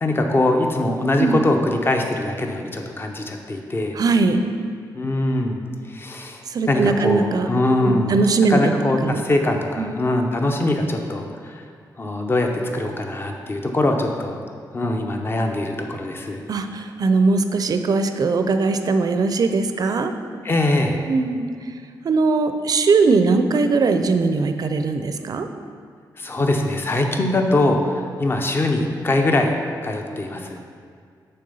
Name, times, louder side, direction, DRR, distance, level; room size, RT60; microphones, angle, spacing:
voice 1, 0.0-4.0 5.0-5.6 5.9-6.4 6.7-8.2 8.5-11.6 12.0-14.4 14.7-16.4 20.4-21.0 26.2-29.6 29.8-30.6, left 2 dB, 30° left, 3 dB, 0.6 m, -22 dB
voice 2, 4.0-4.4 6.5-7.5 7.8-8.7 9.0-9.2 9.8-9.9 16.5-20.1 21.1-21.5 22.0-25.5, right 4 dB, 55° right, 8 dB, 0.4 m, -20 dB
6.8 x 3.4 x 5.4 m, 2.1 s
cardioid pair, 95°, 8 cm